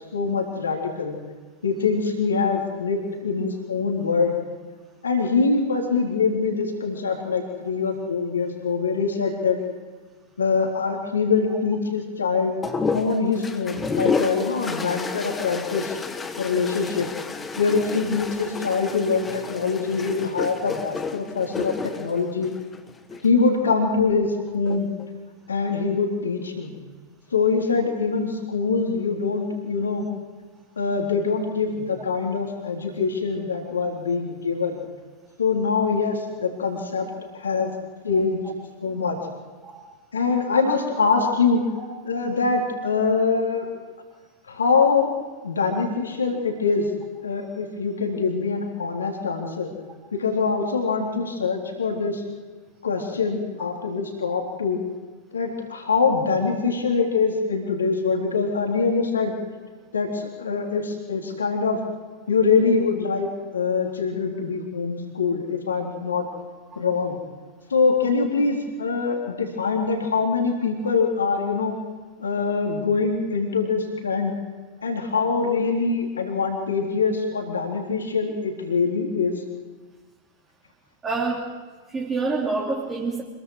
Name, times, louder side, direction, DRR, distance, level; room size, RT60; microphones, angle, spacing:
voice 1, 0.1-1.2 1.6-4.4 5.0-9.6 10.4-12.5 12.9-16.0 16.4-17.1 17.6-22.5 23.2-24.9 25.5-26.7 27.3-30.1 30.8-34.8 35.4-37.1 37.3-37.7 38.0-38.4 38.8-39.2 40.1-41.6 42.0-43.6 44.5-45.1 45.4-46.9 47.2-49.7 50.1-52.2 52.8-54.8 55.3-59.4 59.9-61.8 62.3-63.3 63.5-66.2 66.8-67.2 67.7-71.7 72.2-74.3 74.8-79.4, left 4 dB, 70° left, 1 dB, 3.6 m, -24 dB
sound 1, 12.6-23.3 24.5-25.1, left 4 dB, 15° left, 1.6 m, -31 dB
voice 2, 81.0-81.5 81.9-83.2, right 3 dB, 15° right, -3 dB, 3.3 m, -26 dB
26.5 x 22.0 x 4.9 m, 1.4 s
figure-of-eight pair, 90°, 0 cm